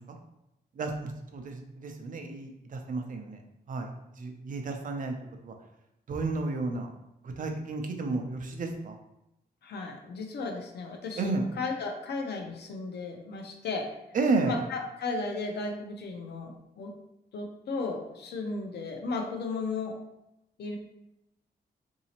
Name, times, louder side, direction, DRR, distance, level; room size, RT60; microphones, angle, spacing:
voice 1, 0.8-3.4 3.7-3.9 4.2-5.2 5.4-5.5 6.1-6.9 7.2-9.0 11.2-11.4 14.1-14.6, right 3 dB, 50° right, 4 dB, 0.5 m, -32 dB
voice 2, 9.6-11.2 11.6-13.9 14.5-16.9 17.3-20.0 20.6-20.8, left 3 dB, 80° left, 2 dB, 0.6 m, -35 dB
4.0 x 2.7 x 2.8 m, 0.88 s
wide cardioid pair, 160°, 17 cm